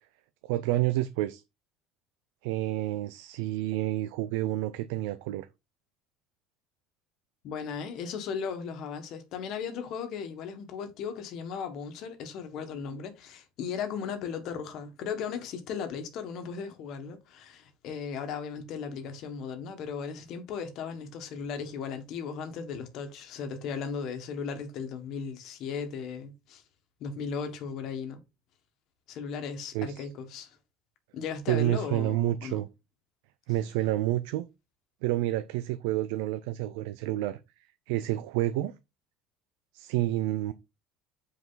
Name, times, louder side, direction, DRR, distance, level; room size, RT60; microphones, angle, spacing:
voice 1, 0.4-1.4 2.4-5.5 29.7-30.1 31.5-32.7 33.5-34.5 35.0-37.4 37.9-38.7 39.7-40.5, right 15 dB, 90° right, 0.6 m, -29 dB
voice 2, 7.4-26.6 27.0-28.2 29.1-30.6 31.1-32.6, left 6 dB, 45° left, 1.6 m, -36 dB
8.2 x 4.7 x 3.9 m
cardioid pair, 175°, 0 cm